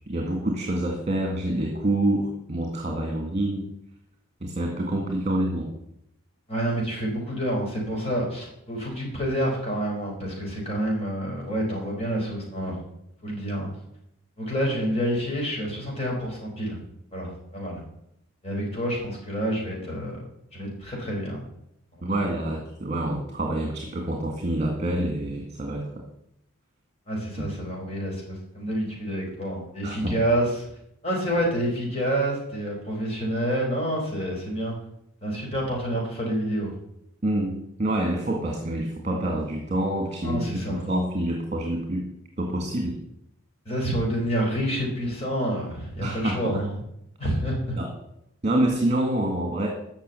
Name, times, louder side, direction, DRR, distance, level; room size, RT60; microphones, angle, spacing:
voice 1, 0.1-3.7 4.4-5.7 22.0-26.0 27.4-27.5 29.8-30.2 37.2-42.1 42.4-43.0 46.0-46.6 47.8-47.9 48.4-49.7, right 1 dB, 30° right, 2 dB, 2.0 m, -27 dB
voice 2, 6.5-12.7 13.2-13.7 14.4-16.8 17.1-17.8 18.4-20.2 20.5-21.4 27.1-30.7 31.0-34.7 35.2-36.7 40.2-40.8 43.7-46.6 47.2-47.8, equal, 30° left, -2 dB, 4.6 m, -28 dB
14.0 x 5.9 x 9.1 m, 0.76 s
head